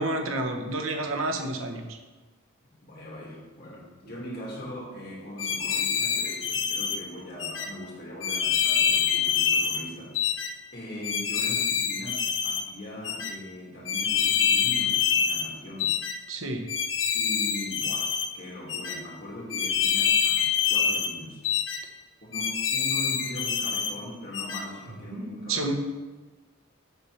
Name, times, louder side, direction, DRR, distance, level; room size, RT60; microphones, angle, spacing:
voice 1, 0.0-2.0 16.3-16.7 25.1-25.7, right 2 dB, 85° right, 4 dB, 1.2 m, -30 dB
voice 2, 2.8-10.2 10.7-15.9 17.1-21.4 22.2-25.7, left 1 dB, 50° left, -4 dB, 2.7 m, -40 dB
sound 1, 5.4-7.0 7.4-7.7 8.2-9.8 10.2-10.5 11.0-12.6 13.0-13.3 13.9-15.5 15.8-16.1 16.7-18.3 18.7-19.0 19.5-21.1 21.4-21.8 22.3-23.9 24.3-24.6, left 7 dB, 65° left, 0.9 m, -26 dB
7.7 x 5.8 x 5.5 m, 1.3 s
head